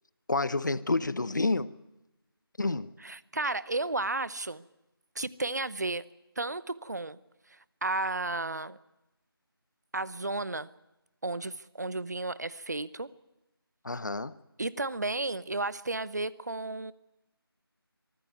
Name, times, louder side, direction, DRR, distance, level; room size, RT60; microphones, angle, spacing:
voice 1, 0.3-1.7 2.6-2.9 13.8-14.4, left 2 dB, 50° left, 0.9 m, -29 dB
voice 2, 3.0-4.7 5.2-6.0 6.4-7.2 7.5-8.8 9.9-10.7 11.2-13.1 14.6-16.9, right 2 dB, 45° right, 0.8 m, -33 dB
23.5 x 14.0 x 9.5 m
figure-of-eight pair, 175°, 13 cm